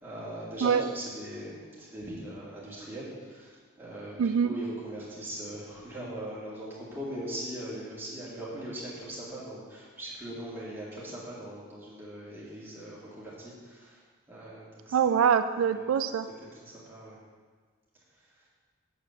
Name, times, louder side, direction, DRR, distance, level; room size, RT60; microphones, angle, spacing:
voice 1, 0.0-3.5 3.8-14.0 14.3-15.0 16.5-17.2, right 1 dB, 10° right, -9 dB, 2.2 m, -40 dB
voice 2, 4.2-4.6 14.9-16.3, right 7 dB, 90° right, 10 dB, 0.3 m, -24 dB
6.8 x 4.8 x 6.9 m, 1.5 s
head